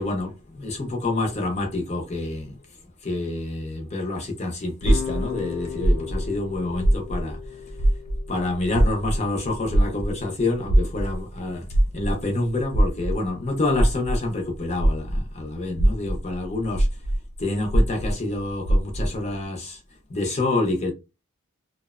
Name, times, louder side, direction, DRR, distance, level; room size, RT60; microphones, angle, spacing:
voice 1, 0.0-7.8 8.3-17.0 17.4-19.8 20.1-20.9, left 2 dB, 30° left, 0.5 m, -28 dB
sound 1, 4.8-10.0, left 8 dB, 85° left, 0.4 m, -37 dB
sound 2, 4.8-7.5 7.7-15.3 15.7-19.2, right 1 dB, 85° right, 0.6 m, -22 dB
2.6 x 2.0 x 2.3 m
head